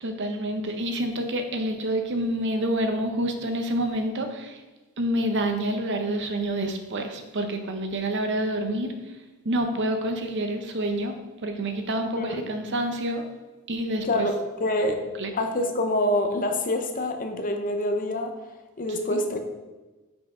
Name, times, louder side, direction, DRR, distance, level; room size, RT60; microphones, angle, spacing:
voice 1, 0.0-4.6 5.0-8.9 9.4-11.1 11.4-13.2 13.7-14.3 15.2-15.3 19.1-19.2, right 1 dB, 50° right, 5 dB, 0.7 m, -28 dB
voice 2, 14.0-15.0 15.3-18.3 18.8-19.4, left 1 dB, 40° left, 5 dB, 0.7 m, -26 dB
5.8 x 4.4 x 4.9 m, 1.2 s
head